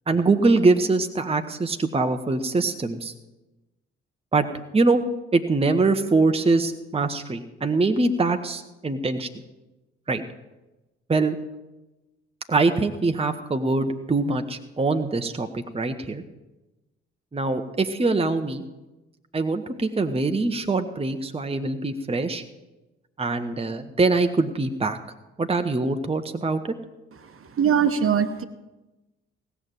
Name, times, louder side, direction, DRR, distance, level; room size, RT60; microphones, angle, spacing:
voice 1, 0.1-3.1 4.3-4.4 4.7-5.0 5.3-9.3 10.1-10.2 11.1-11.4 12.5-16.2 17.3-18.6 19.3-22.4 23.2-25.0 25.4-26.7, right 3 dB, 15° right, 7 dB, 1.0 m, -23 dB
voice 2, 27.6-28.4, right 8 dB, 40° right, 9 dB, 1.2 m, -21 dB
17.5 x 7.0 x 7.7 m, 1.1 s
figure-of-eight pair, 40°, 35 cm